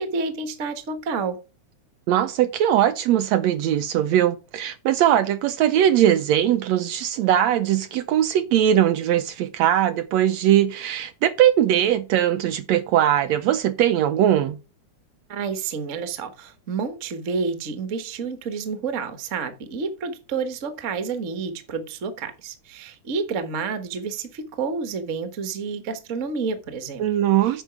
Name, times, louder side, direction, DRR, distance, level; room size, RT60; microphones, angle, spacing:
voice 1, 0.0-1.4 15.3-27.0 27.4-27.6, right 5 dB, 60° right, 0.7 m, -29 dB
voice 2, 2.1-14.6 27.0-27.6, right 11 dB, 75° right, 1.6 m, -20 dB
9.0 x 5.4 x 5.9 m
omnidirectional pair, 3.5 m